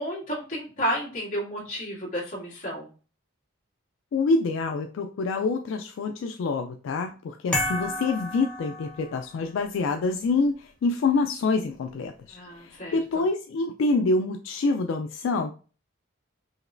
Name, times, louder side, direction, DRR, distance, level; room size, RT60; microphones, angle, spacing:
voice 1, 0.0-2.9 12.3-13.2, equal, 40° left, 2.0 m, -32 dB
voice 2, 4.1-15.5, left 3 dB, 65° left, 0.3 m, -26 dB
sound 1, 7.5-9.4, left 1 dB, 5° left, 0.8 m, -31 dB
5.1 x 3.0 x 2.5 m
head